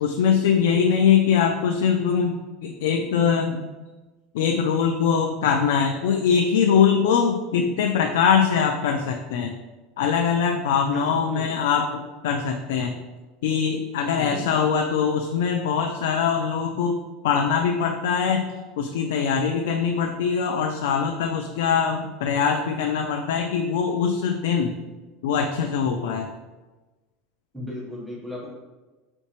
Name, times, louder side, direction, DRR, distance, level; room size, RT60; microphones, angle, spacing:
voice 1, 0.0-3.6 4.3-9.5 10.0-12.9 13.4-17.0 17.2-24.8 25.2-26.3, left 7 dB, 85° left, 4 dB, 0.4 m, -22 dB
voice 2, 10.8-11.5 14.1-14.6 27.5-28.5, left 1 dB, ahead, -6 dB, 0.9 m, -34 dB
4.4 x 3.6 x 2.9 m, 1.2 s
supercardioid pair, 170°, 0 cm